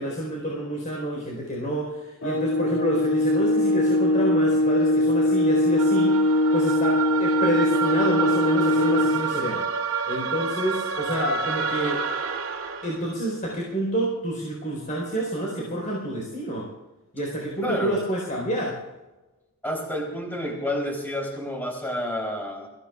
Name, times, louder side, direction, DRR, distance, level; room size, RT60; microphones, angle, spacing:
voice 1, 0.0-6.3 6.5-9.7 10.1-12.0 12.8-16.7 17.1-18.8, right 1 dB, 40° left, -2 dB, 4.3 m, -28 dB
sound 1, 2.2-9.3, left 1 dB, 80° left, 2.2 m, -21 dB
sound 2, 5.8-13.0, right 6 dB, 65° right, 2.5 m, -29 dB
voice 2, 17.6-18.0 19.6-22.7, left 1 dB, 10° left, -2 dB, 3.7 m, -29 dB
26.0 x 16.5 x 2.5 m, 1.1 s
head